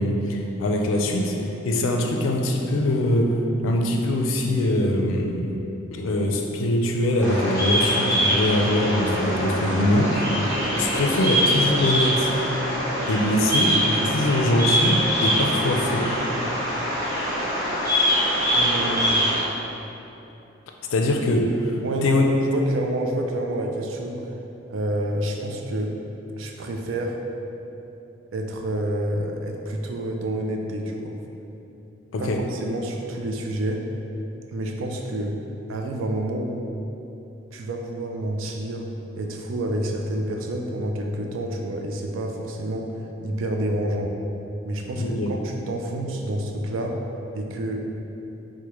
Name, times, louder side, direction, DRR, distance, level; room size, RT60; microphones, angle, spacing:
voice 1, 0.0-1.4 1.6-3.4 3.6-5.6 5.9-10.2 10.5-12.3 13.1-16.1 20.9-22.3 32.1-32.4 45.0-45.3, left 1 dB, 80° left, 2 dB, 0.4 m, -23 dB
Bird vocalization bird call bird song, 7.2-19.4, equal, 15° right, 0.9 m, -23 dB
voice 2, 18.5-19.3 21.8-24.3 24.7-25.9 26.4-27.2 28.3-31.1 32.2-33.8 34.5-35.4 35.7-36.7 37.5-38.9 39.2-42.9 43.2-44.2 44.6-47.0 47.3-47.8, right 1 dB, 80° right, 2 dB, 0.4 m, -28 dB
4.7 x 2.1 x 2.9 m, 2.9 s
head